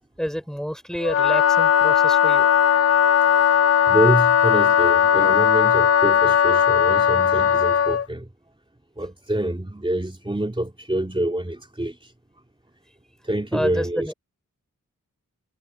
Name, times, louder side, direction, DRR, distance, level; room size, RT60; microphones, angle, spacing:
voice 1, 0.2-2.5 13.5-14.1, equal, ahead, 5.8 m, -29 dB
Wind instrument woodwind instrument, 1.0-8.1, left 9 dB, 45° left, 0.5 m, -18 dB
voice 2, 3.9-8.3 9.0-12.1 13.2-14.1, right 1 dB, 15° right, 3.1 m, -26 dB
cardioid pair, 40°, 33 cm